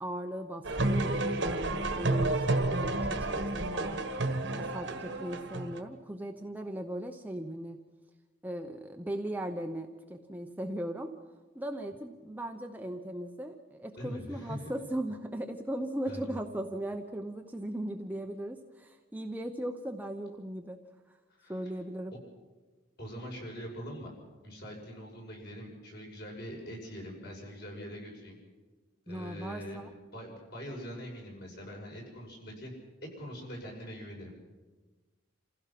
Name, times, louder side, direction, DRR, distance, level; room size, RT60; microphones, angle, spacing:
voice 1, 0.0-4.1 4.6-7.8 8.4-11.1 11.5-20.8 21.5-22.1 29.1-29.9, right 1 dB, 10° right, 4 dB, 0.8 m, -38 dB
sound 1, 0.6-5.8, right 2 dB, 60° right, 1.4 m, -30 dB
voice 2, 14.0-14.6 16.1-16.4 21.4-21.6 23.0-24.1 24.4-28.4 29.1-29.8 30.1-32.7 33.0-34.3, equal, 50° left, -1 dB, 6.1 m, -43 dB
28.0 x 16.0 x 5.9 m, 1.3 s
head